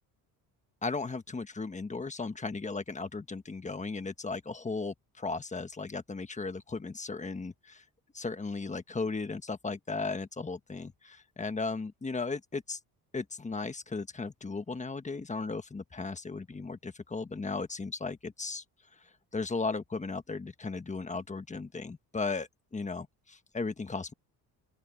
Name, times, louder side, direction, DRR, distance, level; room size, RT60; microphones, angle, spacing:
voice 1, 0.8-7.8 8.1-12.8 13.1-18.6 19.0-24.1, left 4 dB, 20° left, 1.4 m, -36 dB
open air
cardioid pair, 105°, 37 cm